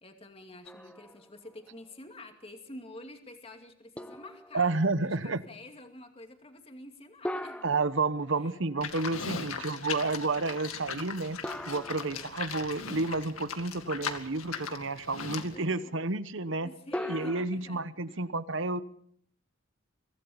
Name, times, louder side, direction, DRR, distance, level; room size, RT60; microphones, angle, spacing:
voice 1, 0.0-4.7 5.0-7.7 8.3-8.6 8.9-9.7 15.5-15.9 16.6-18.3, left 1 dB, 25° left, 5 dB, 2.4 m, -49 dB
sound 1, 0.6-1.5 2.0-2.1 4.0-4.9 7.2-8.8 11.4-12.8 16.9-17.5, left 1 dB, 5° left, 0.8 m, -40 dB
voice 2, 4.5-5.4 7.6-16.7 17.1-18.8, right 3 dB, 60° right, 14 dB, 1.1 m, -31 dB
Livestock farm animals working animals, 8.8-15.5, left 6 dB, 90° left, 2.2 m, -39 dB
24.0 x 17.0 x 7.2 m, 0.63 s
head